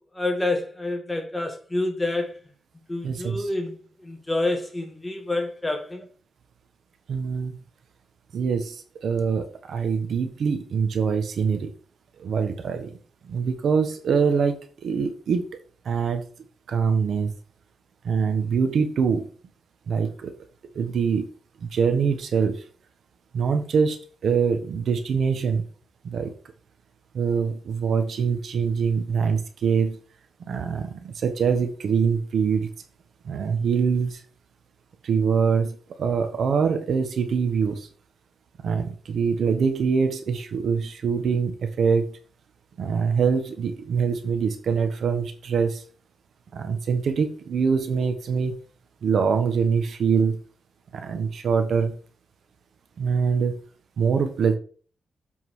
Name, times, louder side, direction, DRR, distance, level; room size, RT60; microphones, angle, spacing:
voice 1, 0.1-2.4 2.9-6.1, left 2 dB, 15° left, 1.7 m, -28 dB
voice 2, 3.0-3.5 7.1-7.5 8.3-11.7 12.2-12.9 13.2-15.4 15.8-16.2 16.7-17.3 18.0-19.3 19.9-20.3 20.7-21.3 21.6-22.6 23.3-24.0 24.2-25.7 26.0-26.3 27.1-30.0 30.5-32.7 33.2-34.2 35.0-37.9 38.6-42.1 42.8-45.8 46.5-48.6 49.0-50.4 50.9-52.0 53.0-53.6 54.0-54.6, right 6 dB, 70° right, 1.2 m, -24 dB
7.4 x 4.0 x 4.7 m
cardioid pair, 110°, 0 cm